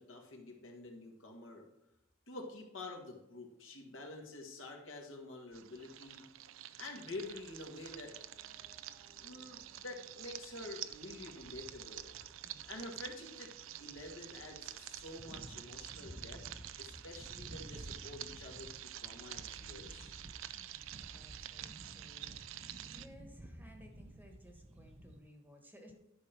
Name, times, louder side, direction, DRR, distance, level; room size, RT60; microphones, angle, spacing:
voice 1, 0.0-1.6 2.3-6.3 6.8-8.1 9.1-12.1 12.7-13.5 13.8-16.4 16.8-20.1, left 2 dB, 70° left, 1 dB, 1.7 m, -48 dB
sound 1, 5.5-23.1, right 13 dB, 75° right, 0.4 m, -48 dB
sound 2, 7.1-25.2, right 1 dB, 35° right, 0.7 m, -55 dB
voice 2, 12.4-12.8 20.5-25.9, equal, 10° right, 2 dB, 1.2 m, -58 dB
11.0 x 5.2 x 4.5 m, 0.87 s
head